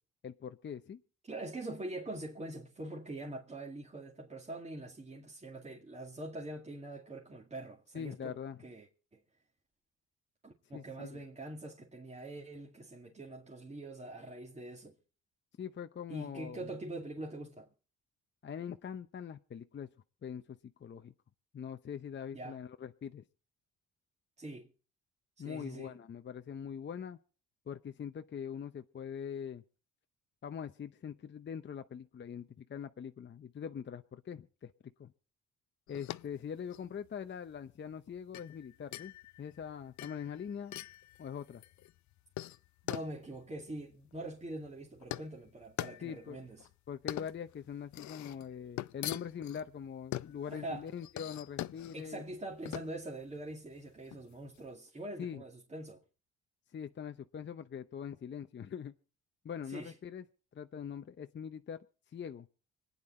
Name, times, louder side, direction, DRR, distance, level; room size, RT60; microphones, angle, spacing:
voice 1, 0.2-1.0 7.9-8.6 10.7-11.2 15.6-16.7 18.4-19.9 20.2-21.1 21.5-23.2 25.4-27.2 27.7-29.6 30.4-34.7 35.0-35.1 35.9-40.8 41.2-41.6 46.0-46.5 46.9-52.2 55.2-55.4 56.7-58.9 59.4-60.2 60.5-61.8 62.1-62.5, left 8 dB, 40° left, 0.7 m, -43 dB
voice 2, 1.3-8.4 8.6-9.2 10.4-15.0 16.1-17.7 22.3-22.6 24.4-24.7 25.4-26.0 42.8-46.6 50.5-50.9 51.9-56.0 59.7-59.9, right 2 dB, 20° right, 2.3 m, -44 dB
sound 1, 35.9-54.7, left 15 dB, 70° left, 0.6 m, -44 dB
25.5 x 9.7 x 4.3 m
cardioid pair, 90°, 30 cm